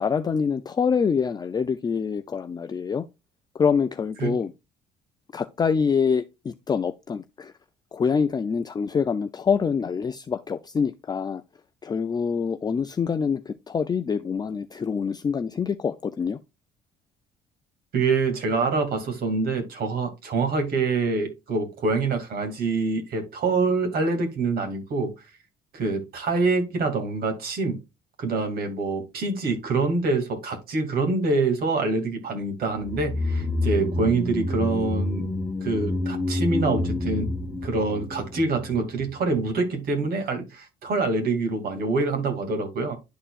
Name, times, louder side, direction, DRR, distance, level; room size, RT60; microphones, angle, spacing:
voice 1, 0.0-3.1 3.5-4.5 5.3-7.5 7.9-11.4 11.8-16.4, left 6 dB, 25° left, 0.4 m, -25 dB
voice 2, 17.9-25.1 25.7-27.8 28.2-35.3 35.6-37.3 37.6-42.9, right 3 dB, 65° right, 2.5 m, -25 dB
sound 1, 32.7-39.1 39.4-39.5, left 1 dB, 5° left, 1.5 m, -28 dB
11.0 x 4.4 x 2.4 m
cardioid pair, 110°, 17 cm